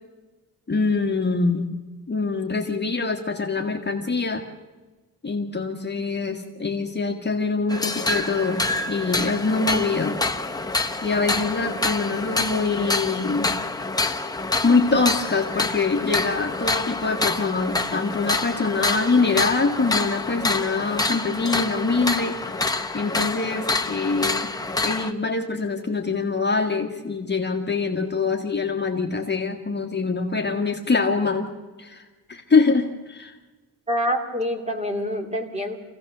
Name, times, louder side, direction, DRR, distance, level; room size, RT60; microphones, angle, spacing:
voice 1, 0.7-1.7 2.1-4.5 5.2-10.2 11.0-13.5 14.6-22.5 22.9-24.5 24.8-31.5 31.8-33.4, left 4 dB, 30° left, 2 dB, 1.6 m, -24 dB
sound 1, 7.7-25.1, left 2 dB, 10° left, 0.9 m, -27 dB
voice 2, 33.9-35.8, equal, 20° right, 3 dB, 2.8 m, -26 dB
26.5 x 16.0 x 6.7 m, 1.2 s
wide cardioid pair, 135°, 37 cm